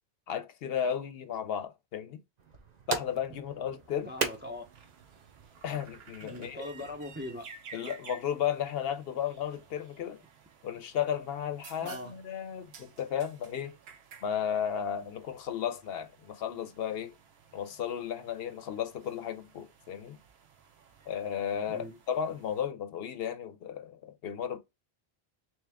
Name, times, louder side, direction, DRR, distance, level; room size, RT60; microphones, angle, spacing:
voice 1, 0.3-2.2 2.9-4.1 5.6-6.7 7.7-10.2 10.6-13.8 14.2-17.1 17.5-20.2 21.1-24.6, left 8 dB, 70° left, 0.8 m, -34 dB
sound 1, 2.4-7.5, right 4 dB, 45° right, 0.8 m, -40 dB
sound 2, 3.8-22.6, right 6 dB, 75° right, 1.0 m, -55 dB
voice 2, 4.0-4.7 6.2-7.5 11.8-12.1 21.7-22.0, left 1 dB, 15° right, 0.5 m, -40 dB
3.4 x 3.0 x 3.4 m
omnidirectional pair, 1.1 m